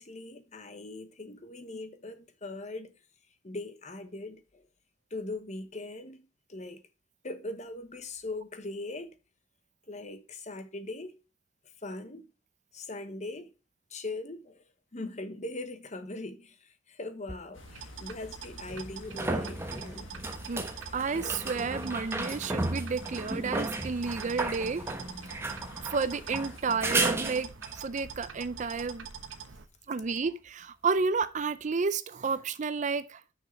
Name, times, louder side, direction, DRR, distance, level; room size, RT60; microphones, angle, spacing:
voice 1, 0.0-2.9 3.4-4.7 5.1-6.8 7.2-9.1 9.9-11.2 11.8-12.3 12.7-13.5 13.9-14.6 14.9-20.1, left 2 dB, 35° left, 1.0 m, -40 dB
sound 1, 17.3-17.4 18.7-27.8 31.2-31.3, right 2 dB, 15° right, 1.0 m, -34 dB
sound 2, 17.5-26.6, left 3 dB, 85° left, 1.5 m, -51 dB
sound 3, 17.6-29.7, right 6 dB, 85° right, 1.0 m, -45 dB
voice 2, 20.5-24.9 25.3-25.4 25.8-29.1 29.9-33.2, right 4 dB, 40° right, 0.4 m, -31 dB
6.5 x 6.4 x 5.2 m
head